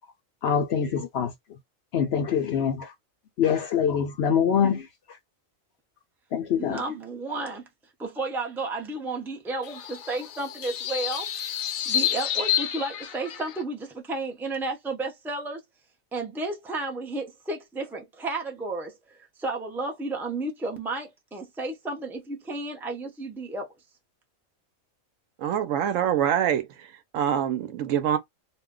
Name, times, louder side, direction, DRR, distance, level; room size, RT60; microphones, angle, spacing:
voice 1, 0.4-1.3 1.9-2.9 3.4-4.8 6.3-6.8, left 7 dB, 65° left, 0.7 m, -24 dB
voice 2, 6.6-7.7 8.0-11.3 11.8-15.6 16.1-23.7, right 2 dB, 5° right, 0.4 m, -32 dB
sound 1, 9.6-13.6, left 10 dB, 85° left, 1.0 m, -29 dB
voice 3, 25.4-26.9 27.1-28.2, right 9 dB, 75° right, 0.9 m, -25 dB
2.5 x 2.1 x 3.6 m
omnidirectional pair, 1.4 m